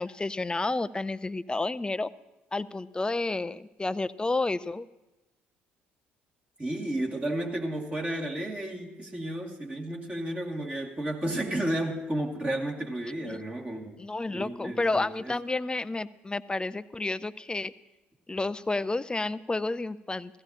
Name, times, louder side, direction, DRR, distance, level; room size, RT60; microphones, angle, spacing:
voice 1, 0.0-2.1 2.5-4.9 13.3-13.4 14.0-17.7 18.3-20.4, left 2 dB, 15° left, 17 dB, 0.4 m, -30 dB
voice 2, 6.6-14.0 14.3-15.3, right 1 dB, 25° right, -2 dB, 2.3 m, -32 dB
16.5 x 14.5 x 2.9 m, 1.1 s
hypercardioid pair, 55°, 5 cm